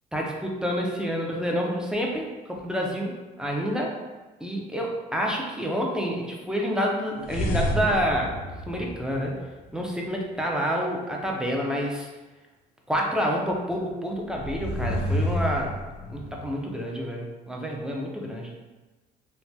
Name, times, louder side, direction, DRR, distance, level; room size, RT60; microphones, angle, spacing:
voice 1, 0.1-3.9 4.4-8.3 8.7-9.4 9.7-12.1 12.9-15.7 16.1-18.5, equal, 5° right, -1 dB, 0.5 m, -28 dB
sound 1, 7.2-9.7 14.2-16.5, equal, 70° left, 0.5 m, -29 dB
3.3 x 2.1 x 2.7 m, 1.2 s
cardioid pair, 110°, 17 cm